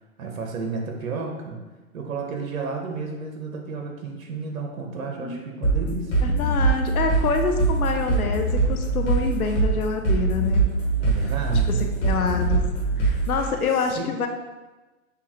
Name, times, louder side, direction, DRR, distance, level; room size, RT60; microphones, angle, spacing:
voice 1, 0.2-1.6 1.9-6.3 11.0-11.8 13.1-13.3 13.7-14.1, right 4 dB, 75° right, 2 dB, 0.9 m, -32 dB
sound 1, 5.6-13.5, right 3 dB, 20° left, 1.3 m, -22 dB
voice 2, 6.2-10.7 11.7-12.6 13.0-14.3, left 5 dB, 90° left, 5 dB, 0.7 m, -26 dB
6.8 x 2.4 x 2.8 m, 1.2 s
hypercardioid pair, 140°, 42 cm